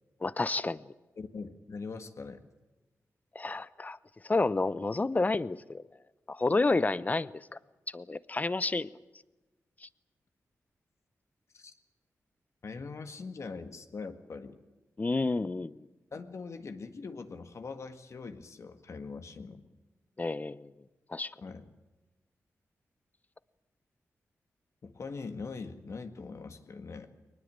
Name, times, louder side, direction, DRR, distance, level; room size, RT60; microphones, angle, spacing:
voice 1, 0.2-0.8 3.3-4.0 4.2-5.8 6.3-7.6 7.9-8.9 15.0-15.8 20.2-20.7 21.1-21.3, left 3 dB, 30° left, 0.7 m, -30 dB
voice 2, 1.2-2.4 11.5-11.7 12.6-14.6 16.1-19.7 21.4-21.7 24.8-27.1, left 4 dB, 60° left, 1.9 m, -42 dB
22.0 x 20.0 x 8.9 m
cardioid pair, 80°, 6 cm